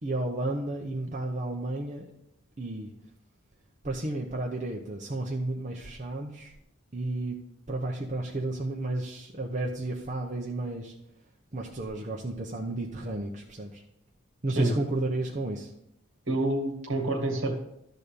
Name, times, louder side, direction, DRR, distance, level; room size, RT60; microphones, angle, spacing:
voice 1, 0.0-2.0 2.6-2.9 3.8-6.5 6.9-7.4 7.7-10.9 11.5-13.8 14.4-15.7, right 2 dB, 35° right, -1 dB, 0.8 m, -32 dB
voice 2, 16.3-17.6, right 2 dB, 65° right, 3 dB, 1.9 m, -27 dB
12.5 x 4.2 x 6.7 m, 0.80 s
head